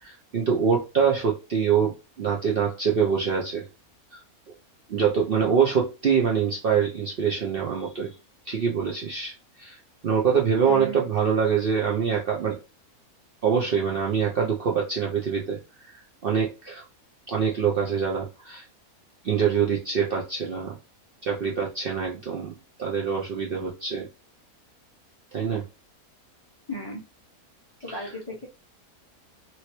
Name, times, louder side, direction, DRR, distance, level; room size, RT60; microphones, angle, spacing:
voice 1, 0.0-3.6 4.1-4.2 4.9-8.1 8.5-9.8 10.0-12.6 13.4-15.6 15.9-16.8 17.3-18.6 19.2-20.8 21.2-22.5 22.8-24.1 25.3-25.6 28.0-28.1, right 6 dB, 60° right, -2 dB, 0.6 m, -25 dB
voice 2, 10.6-11.0 26.7-27.0 27.8-28.4, equal, 30° left, -2 dB, 0.4 m, -35 dB
3.0 x 2.8 x 2.9 m, 0.29 s
omnidirectional pair, 1.5 m